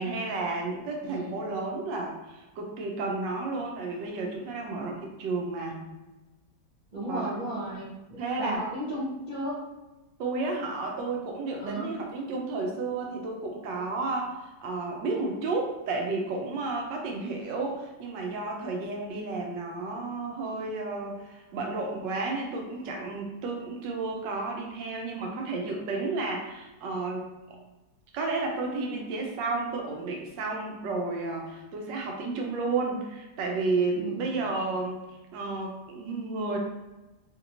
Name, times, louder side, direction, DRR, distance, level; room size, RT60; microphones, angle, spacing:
voice 1, 0.0-5.9 7.1-7.3 8.2-8.6 10.2-27.3 28.1-35.0 35.3-36.6, right 3 dB, 85° right, 1 dB, 1.3 m, -32 dB
voice 2, 1.0-1.4 6.9-9.6 11.6-11.9 33.9-34.4, right 1 dB, 40° right, -10 dB, 0.6 m, -35 dB
3.2 x 2.9 x 2.6 m, 1.1 s
omnidirectional pair, 1.9 m